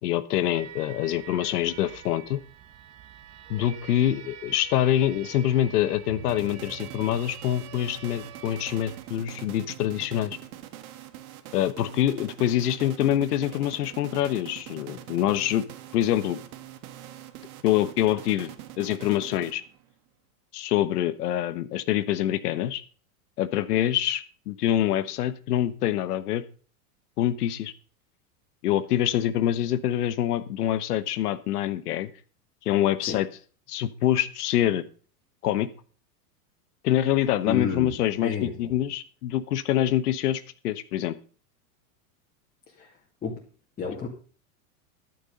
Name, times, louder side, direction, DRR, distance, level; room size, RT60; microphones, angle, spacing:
voice 1, 0.0-2.4 3.5-10.4 11.5-15.6 15.9-16.4 17.6-18.5 18.8-19.6 20.5-22.8 23.4-26.4 27.2-27.7 28.6-32.1 32.6-33.3 33.7-34.8 35.4-35.7 36.8-41.1, left 12 dB, 85° left, 13 dB, 1.2 m, -25 dB
sound 1, 0.5-9.1, right 8 dB, 30° right, 1.3 m, -45 dB
sound 2, 6.3-19.9, right 12 dB, 65° right, 1.6 m, -44 dB
voice 2, 37.5-37.9 38.2-38.7 42.7-42.9 43.2-43.4 43.8-44.1, left 6 dB, 20° left, -1 dB, 2.1 m, -31 dB
11.5 x 9.2 x 5.3 m, 0.40 s
supercardioid pair, 145°, 45 cm